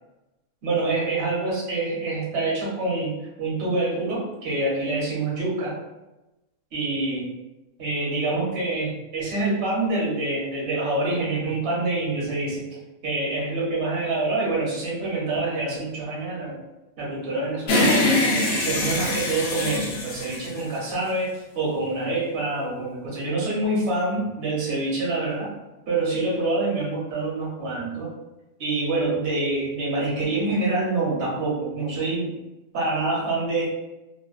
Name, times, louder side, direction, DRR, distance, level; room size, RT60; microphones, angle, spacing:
voice 1, 0.6-5.7 6.7-7.3 7.8-12.7 13.0-16.6 17.0-18.3 18.6-25.5 25.9-28.1 28.6-32.3 32.7-33.6, right 2 dB, 55° right, -5 dB, 1.0 m, -26 dB
sound 1, 17.7-21.2, left 1 dB, 65° left, 0.7 m, -23 dB
2.6 x 2.1 x 2.3 m, 0.99 s
omnidirectional pair, 1.3 m